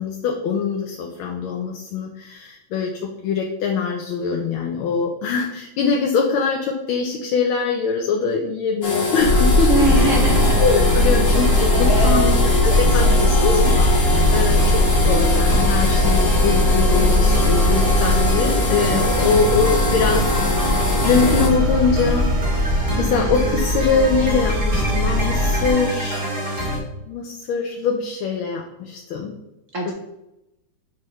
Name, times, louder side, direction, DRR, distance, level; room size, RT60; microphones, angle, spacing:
voice 1, 0.0-10.1 10.6-12.3 12.6-13.9 14.3-22.3 23.0-26.3 27.1-29.4 29.9-30.0, left 5 dB, 75° left, 1 dB, 1.5 m, -23 dB
sound 1, 8.8-21.5, left 3 dB, 40° left, 1.0 m, -24 dB
sound 2, 9.2-25.7, left 1 dB, 85° right, 2.2 m, -20 dB
sound 3, 9.7-26.8, right 1 dB, 25° right, 1.5 m, -26 dB
voice 2, 9.7-10.6 11.7-12.3 12.7-13.8 29.7-29.9, right 3 dB, 65° right, 1 dB, 0.7 m, -24 dB
6.5 x 5.4 x 3.2 m, 0.89 s
omnidirectional pair, 2.3 m